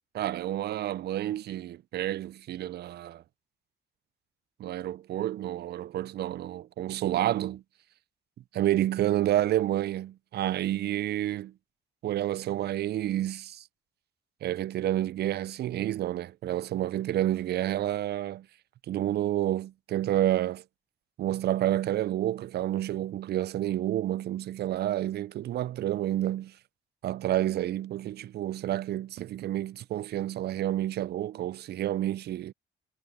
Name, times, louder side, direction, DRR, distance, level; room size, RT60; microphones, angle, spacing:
voice 1, 0.1-3.2 4.6-7.6 8.5-11.5 12.0-13.7 14.4-18.5 18.9-20.6 21.2-26.6 27.0-32.5, right 13 dB, 55° right, 0.4 m, -29 dB
cardioid pair, 90°, 20 cm